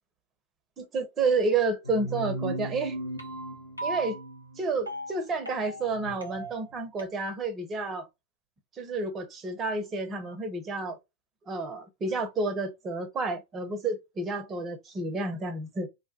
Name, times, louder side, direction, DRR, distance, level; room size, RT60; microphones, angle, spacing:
voice 1, 0.8-3.0 3.8-4.2 4.6-8.1 8.8-11.0 11.5-15.9, right 3 dB, 25° right, 0.7 m, -30 dB
sound 1, 1.8-7.0, right 1 dB, 90° left, 0.7 m, -37 dB
2.2 x 2.2 x 2.6 m
figure-of-eight pair, 90°, 0 cm